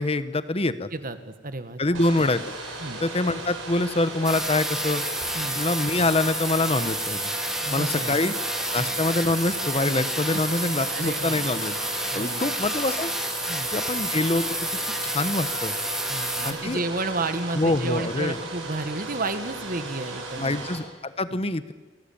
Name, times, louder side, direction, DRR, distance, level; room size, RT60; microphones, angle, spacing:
voice 1, 0.0-0.9 1.8-2.4 3.0-5.0 5.5-7.3 7.7-8.3 8.7-11.8 12.1-13.1 13.7-14.4 15.0-15.7 16.4-16.8 17.5-18.4 20.4-21.7, left 2 dB, 30° left, 13 dB, 1.2 m, -25 dB
voice 2, 0.9-2.0 2.8-3.0 5.4-5.6 7.6-8.2 8.8-8.9 10.3-10.4 10.9-11.4 12.1-12.5 13.5-13.7 16.1-20.7 21.3-21.4, right 2 dB, 45° right, 10 dB, 1.8 m, -32 dB
Domestic sounds home sounds, 1.9-20.8, right 2 dB, 85° right, 6.6 m, -37 dB
sound 1, 4.2-16.5, right 1 dB, ahead, 2.0 m, -30 dB
28.0 x 19.0 x 8.8 m, 1.2 s
head